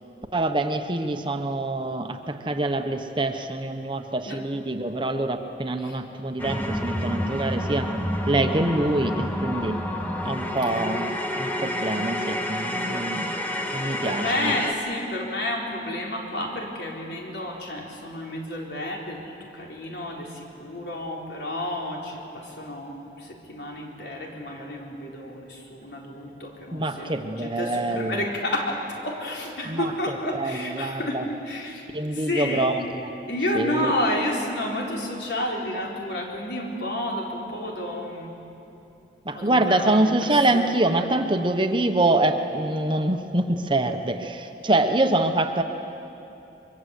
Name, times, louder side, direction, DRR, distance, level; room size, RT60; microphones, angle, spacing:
voice 1, 0.3-7.9 8.3-9.8 10.2-13.3 13.7-14.5 26.7-28.2 29.6-31.3 31.9-33.1 33.5-33.9 39.2-45.6, right 2 dB, 25° right, 6 dB, 1.1 m, -25 dB
sound 1, 6.4-14.7, equal, 10° left, 1.5 m, -29 dB
voice 2, 14.0-19.2 19.5-32.7 33.3-38.4 39.3-40.1 40.5-40.6, left 1 dB, 75° left, -1 dB, 4.1 m, -30 dB
24.0 x 23.0 x 8.5 m, 3.0 s
head